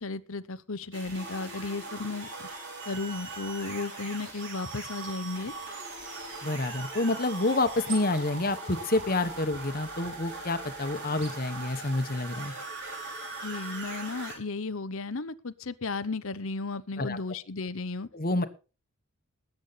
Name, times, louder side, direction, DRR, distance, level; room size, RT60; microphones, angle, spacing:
voice 1, 0.0-2.5 2.9-5.5 13.4-18.1, left 3 dB, 65° left, 15 dB, 0.9 m, -34 dB
sound 1, 0.9-14.4, right 3 dB, 55° right, 5.8 m, -40 dB
sound 2, 5.2-11.7, right 4 dB, 35° right, 5.7 m, -50 dB
voice 2, 6.4-12.5 17.0-17.2 18.1-18.5, left 2 dB, 40° left, 10 dB, 1.3 m, -28 dB
20.0 x 8.4 x 4.2 m, 0.34 s
head